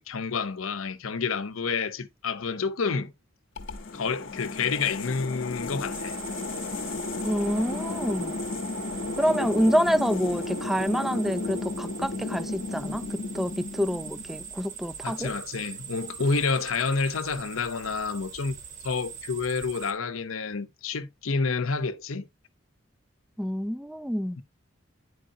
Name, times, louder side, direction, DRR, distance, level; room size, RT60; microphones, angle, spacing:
voice 1, 0.0-3.1 3.9-6.2 15.0-18.5 18.8-22.3 24.4-24.5, left 4 dB, 85° left, 0.7 m, -29 dB
sound 1, 3.6-14.6, left 3 dB, 65° left, 0.9 m, -34 dB
sound 2, 5.9-19.9, right 7 dB, 35° right, 1.1 m, -42 dB
voice 2, 7.2-8.4 9.2-15.3 23.4-24.4, equal, ahead, 0.3 m, -27 dB
10.5 x 4.7 x 2.6 m
head